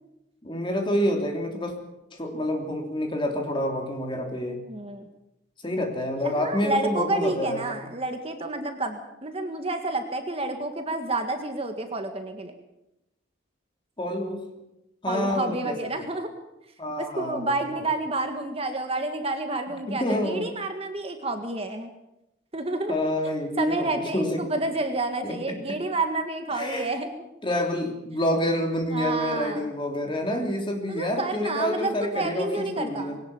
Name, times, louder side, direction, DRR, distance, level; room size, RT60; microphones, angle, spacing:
voice 1, 0.4-1.7 2.1-4.6 5.6-7.7 14.0-14.4 15.0-15.8 16.8-17.8 19.9-20.5 22.9-24.4 25.2-25.8 26.5-26.9 27.4-33.2, left 1 dB, 25° left, 2 dB, 3.3 m, -28 dB
voice 2, 4.7-5.1 6.2-12.5 15.1-16.3 17.0-21.9 22.5-23.0 23.6-27.1 28.9-29.7 30.9-33.2, right 2 dB, 30° right, 6 dB, 1.8 m, -29 dB
21.0 x 18.5 x 7.2 m, 0.87 s
head